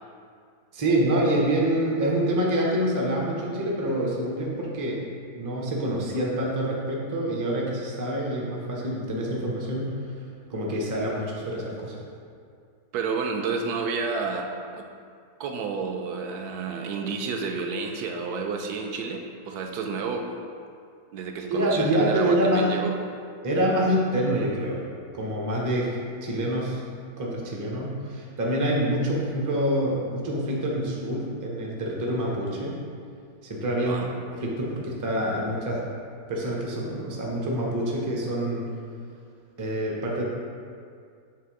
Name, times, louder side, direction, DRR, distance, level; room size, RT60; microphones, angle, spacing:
voice 1, 0.7-5.0 5.3-10.0 10.5-12.0 21.5-22.7 23.4-24.8 25.1-26.8 27.2-32.8 33.4-34.0 34.4-35.8 36.3-38.7 39.6-40.2, right 1 dB, 25° right, -3 dB, 0.4 m, -26 dB
voice 2, 12.9-14.9 15.4-20.4 21.1-22.9 33.9-34.1, right 4 dB, 75° right, 3 dB, 1.1 m, -30 dB
6.6 x 3.3 x 4.7 m, 2.3 s
omnidirectional pair, 1.8 m